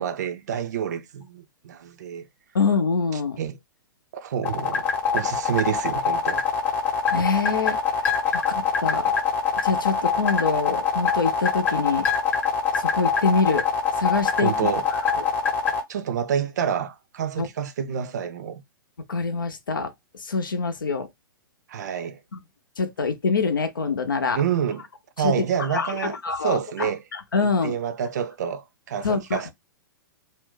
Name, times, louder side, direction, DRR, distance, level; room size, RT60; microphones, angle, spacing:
voice 1, 0.0-2.3 3.4-3.6 4.1-4.9 5.1-6.4 8.3-8.4 14.4-14.9 15.9-18.6 21.7-22.2 24.3-24.8 25.2-26.1 26.4-27.0 27.4-29.5, right 8 dB, 50° right, 0.5 m, -28 dB
voice 2, 2.5-3.4 7.1-7.8 8.3-9.1 9.6-12.1 12.7-13.7 14.0-14.5 15.2-15.3 17.4-17.5 19.1-19.9 20.2-21.1 22.3-22.4 22.8-24.4 25.2-25.3 25.7-27.8 29.0-29.4, left 4 dB, 70° left, 0.7 m, -25 dB
sound 1, 4.4-15.8, left 7 dB, 15° left, 0.9 m, -23 dB
2.5 x 2.2 x 3.7 m
figure-of-eight pair, 110°, 11 cm